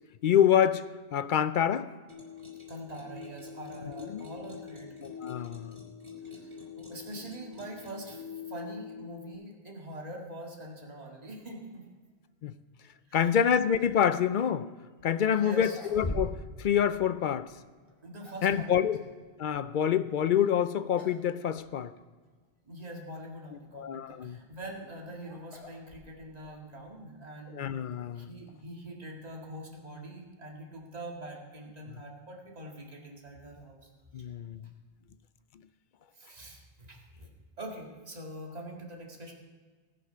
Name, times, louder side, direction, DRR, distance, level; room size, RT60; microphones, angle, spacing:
voice 1, 0.2-1.9 4.1-4.2 5.0-5.8 12.4-12.5 13.1-14.7 15.0-17.5 18.4-19.0 19.4-21.9 23.7-24.4 27.5-28.3 31.9-32.0 34.1-34.7, left 9 dB, 60° left, 13 dB, 0.6 m, -27 dB
sound 1, 2.1-9.3, left 7 dB, 75° right, 3.6 m, -45 dB
voice 2, 2.7-4.9 6.3-11.9 13.1-13.3 15.3-15.8 18.0-18.9 22.7-27.7 28.1-33.9 36.2-37.3 37.6-39.3, right 1 dB, 35° right, -1 dB, 2.1 m, -44 dB
sound 2, 15.0-15.1 15.5-16.6 16.9-17.0 17.8-18.6 20.4-20.6 21.0-21.3 21.6-21.7 22.4-22.5 24.3-26.4, equal, 30° left, 3.6 m, -41 dB
19.5 x 6.6 x 5.6 m, 1.5 s
omnidirectional pair, 1.1 m